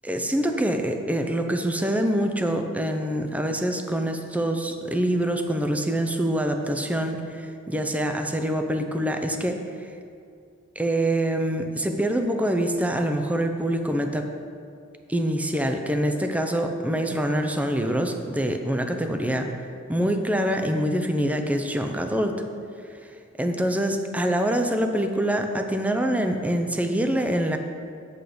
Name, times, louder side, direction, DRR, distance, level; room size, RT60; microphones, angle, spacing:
voice 1, 0.0-9.6 10.8-14.2 15.1-19.5 19.9-22.4 23.4-27.6, right 1 dB, 5° right, 5 dB, 0.6 m, -25 dB
8.3 x 7.9 x 5.0 m, 2.4 s
head